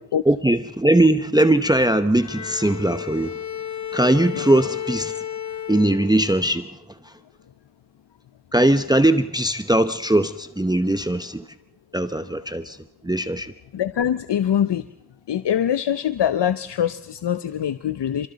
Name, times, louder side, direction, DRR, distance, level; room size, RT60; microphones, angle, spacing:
voice 1, 0.3-3.4 3.9-5.3 5.7-7.2 8.5-11.5 11.9-13.5, right 1 dB, 10° right, 0.8 m, -20 dB
Bowed string instrument, 2.1-6.6, left 9 dB, 45° left, 1.4 m, -33 dB
voice 2, 13.7-14.9 15.3-18.3, left 9 dB, 80° left, 0.7 m, -23 dB
29.0 x 24.5 x 4.0 m
cardioid pair, 55°, 41 cm